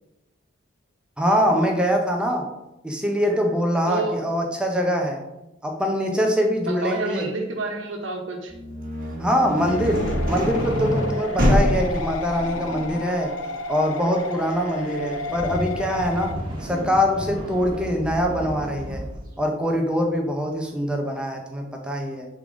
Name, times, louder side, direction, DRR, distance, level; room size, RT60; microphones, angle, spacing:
voice 1, 1.2-2.5 2.8-5.2 5.6-7.3 9.2-13.3 13.7-19.0 19.4-22.3, equal, 5° right, 1 dB, 0.6 m, -23 dB
voice 2, 3.9-4.2 6.6-8.5, right 3 dB, 75° right, 2 dB, 1.1 m, -29 dB
sound 1, 8.5-18.3, equal, 45° right, 1.5 m, -27 dB
sound 2, 9.7-16.3, left 2 dB, 85° left, 0.5 m, -32 dB
sound 3, 15.0-19.2, right 1 dB, 25° right, 1.4 m, -33 dB
6.5 x 3.8 x 4.9 m, 0.95 s
head